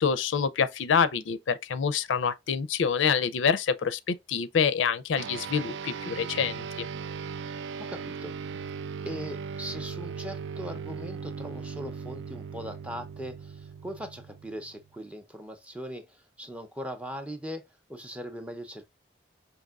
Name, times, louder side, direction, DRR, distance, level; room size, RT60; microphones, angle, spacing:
voice 1, 0.0-6.9, left 6 dB, 90° left, 0.4 m, -26 dB
sound 1, 5.2-14.9, right 6 dB, 75° right, 0.3 m, -38 dB
voice 2, 7.8-8.7 9.0-18.9, equal, 5° right, 0.5 m, -40 dB
5.2 x 2.8 x 2.3 m
head